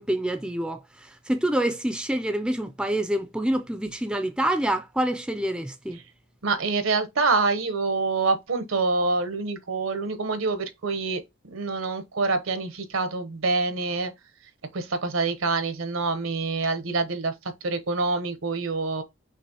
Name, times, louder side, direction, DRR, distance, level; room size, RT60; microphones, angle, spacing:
voice 1, 0.0-6.0, right 1 dB, 5° right, 0.3 m, -27 dB
voice 2, 6.4-14.1 14.7-17.3 17.6-19.0, right 3 dB, 80° right, 0.9 m, -26 dB
6.1 x 2.6 x 2.8 m
head